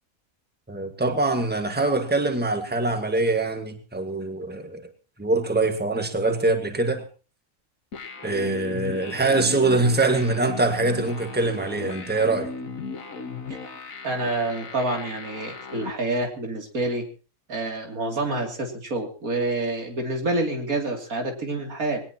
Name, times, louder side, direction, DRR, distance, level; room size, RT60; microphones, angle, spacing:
voice 1, 0.7-4.9 5.2-7.0 8.2-12.5, right 2 dB, 5° right, 6 dB, 1.7 m, -24 dB
sound 1, 7.9-15.9, left 4 dB, 70° left, 2.0 m, -36 dB
voice 2, 14.0-17.0 17.5-22.0, right 2 dB, 80° right, 2 dB, 3.4 m, -27 dB
21.0 x 19.0 x 3.0 m, 0.35 s
omnidirectional pair, 1.5 m